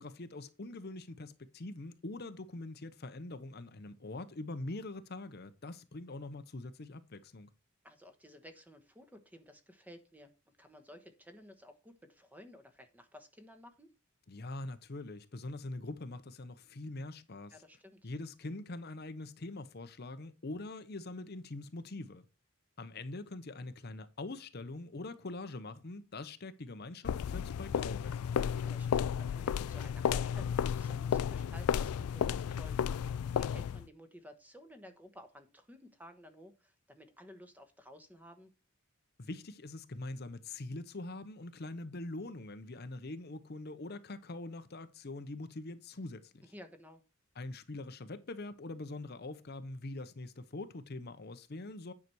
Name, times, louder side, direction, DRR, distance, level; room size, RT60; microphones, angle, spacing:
voice 1, 0.0-7.5 14.3-17.6 18.0-22.3 22.8-28.3 39.2-46.5 47.4-51.9, left 2 dB, 45° left, 0.7 m, -43 dB
voice 2, 7.8-10.3 10.6-13.9 17.5-18.0 28.5-38.5 46.5-47.0, equal, 5° right, 1.1 m, -55 dB
sound 1, 27.0-33.9, left 8 dB, 90° left, 0.4 m, -33 dB
9.5 x 5.8 x 4.6 m
head